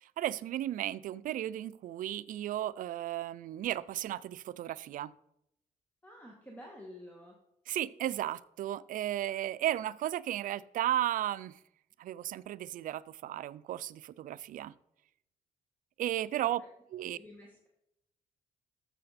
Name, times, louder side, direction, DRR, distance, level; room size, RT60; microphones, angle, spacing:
voice 1, 0.0-5.1 7.7-11.6 12.0-14.7 16.0-16.6 16.9-17.2, right 12 dB, 65° right, 17 dB, 0.4 m, -34 dB
voice 2, 6.0-7.4 17.2-17.7, left 1 dB, 10° left, -1 dB, 1.8 m, -50 dB
13.5 x 6.7 x 4.2 m, 0.80 s
cardioid pair, 110°, 15 cm